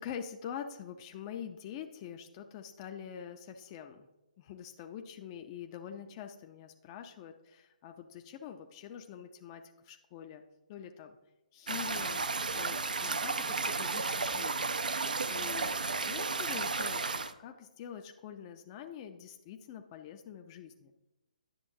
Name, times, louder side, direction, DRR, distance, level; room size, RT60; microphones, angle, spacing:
voice 1, 0.0-4.1 4.4-10.4 10.7-11.2 11.5-12.3 12.5-14.8 15.3-20.9, left 8 dB, 30° left, 5 dB, 0.5 m, -45 dB
sound 1, 11.7-17.3, right 4 dB, 75° right, 0.5 m, -33 dB
10.0 x 6.8 x 2.7 m, 0.99 s
figure-of-eight pair, 140°, 4 cm